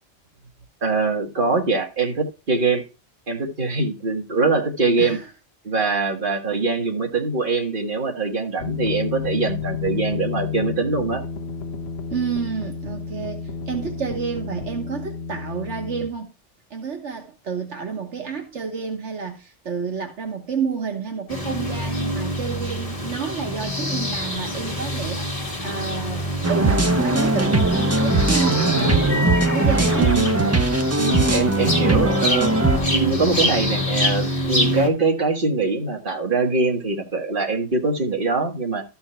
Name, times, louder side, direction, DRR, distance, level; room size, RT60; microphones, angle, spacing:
voice 1, 0.8-2.8 3.3-5.2 5.6-11.2 29.9-30.5 31.0-32.5 32.9-38.8, right 3 dB, 45° right, 1.9 m, -23 dB
voice 2, 5.0-5.3 12.1-16.3 16.7-29.0 29.4-30.2, right 6 dB, 75° right, 1.5 m, -30 dB
sound 1, 8.6-16.1, left 6 dB, 60° left, 1.1 m, -31 dB
sound 2, 21.3-34.9, left 1 dB, 30° left, 2.4 m, -25 dB
sound 3, 26.4-32.8, right 2 dB, 15° right, 0.6 m, -20 dB
13.5 x 4.6 x 4.4 m
omnidirectional pair, 1.2 m